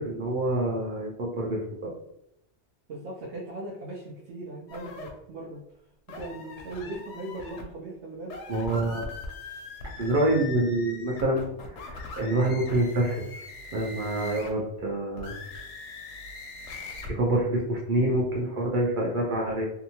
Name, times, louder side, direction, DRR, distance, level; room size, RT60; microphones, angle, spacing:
voice 1, 0.0-1.9 8.5-9.1 10.0-11.5 11.8-13.4 13.7-15.3 17.1-19.7, right 1 dB, 60° right, -2 dB, 0.6 m, -26 dB
voice 2, 2.9-5.6 6.1-8.4, right 2 dB, 80° right, -3 dB, 0.9 m, -39 dB
sound 1, 4.7-5.1 6.1-7.6 8.2-14.6 15.1-17.1, left 3 dB, 85° left, 0.9 m, -41 dB
2.7 x 2.3 x 2.7 m, 0.79 s
omnidirectional pair, 1.2 m